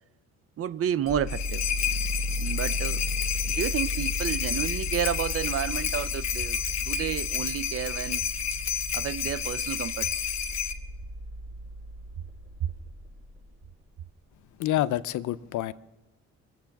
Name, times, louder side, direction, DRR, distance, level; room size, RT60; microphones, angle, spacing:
voice 1, 0.6-1.6 2.4-3.0 3.4-6.6 6.9-8.3 8.9-10.1 12.6-12.7, right 9 dB, 50° right, 0.6 m, -31 dB
sound 1, 1.0-13.7, left 2 dB, 35° right, 3.9 m, -35 dB
sound 2, 1.1-10.7, left 8 dB, 60° left, 1.1 m, -31 dB
voice 2, 14.6-15.7, left 13 dB, 75° left, 0.6 m, -27 dB
21.5 x 7.8 x 5.9 m
cardioid pair, 90°, 30 cm